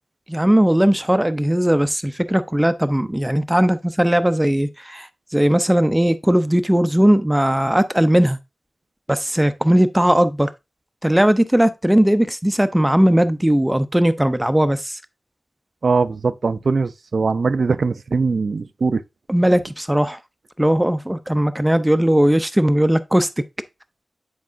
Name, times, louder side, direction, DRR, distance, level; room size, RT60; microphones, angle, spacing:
voice 1, 0.3-8.4 9.1-10.5 11.0-15.0 19.3-20.2 20.6-23.3, right 1 dB, 10° right, 0.5 m, -18 dB
voice 2, 15.8-19.0, right 4 dB, 70° right, 0.4 m, -21 dB
9.6 x 4.7 x 2.5 m
wide cardioid pair, 95°, 0 cm